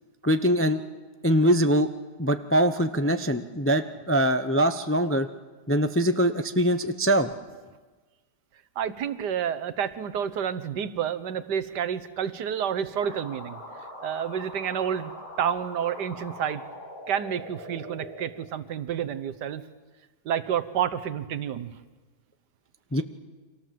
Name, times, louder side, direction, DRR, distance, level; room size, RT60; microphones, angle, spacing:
voice 1, 0.2-0.8 1.2-1.9 2.2-5.3 5.7-7.3 22.9-23.0, equal, 15° left, 9 dB, 0.5 m, -23 dB
voice 2, 8.8-13.6 14.0-15.1 15.4-16.6 17.1-19.6 20.2-21.8, right 8 dB, 85° right, 11 dB, 1.6 m, -29 dB
sound 1, 13.0-18.2, left 1 dB, 70° left, 7.4 m, -42 dB
30.0 x 25.0 x 7.6 m, 1.3 s
omnidirectional pair, 1.8 m